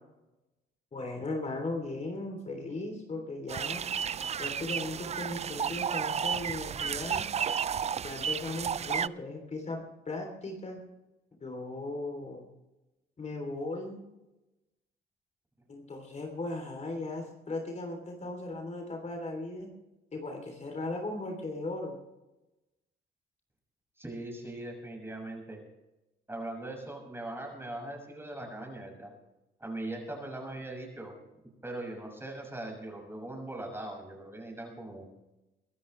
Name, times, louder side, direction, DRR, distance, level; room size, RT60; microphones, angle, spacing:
voice 1, 0.9-3.8 4.4-7.3 8.0-10.8 11.4-12.4 13.2-14.0 15.7-19.7 20.1-22.0, left 2 dB, 35° left, 3 dB, 3.3 m, -37 dB
sound 1, 3.5-9.1, right 7 dB, 35° right, 0.4 m, -32 dB
voice 2, 24.0-25.6 26.3-29.1 29.6-31.1 31.6-35.1, right 1 dB, 10° right, 1 dB, 6.3 m, -40 dB
23.5 x 13.0 x 3.3 m, 1.0 s
cardioid pair, 90°, 20 cm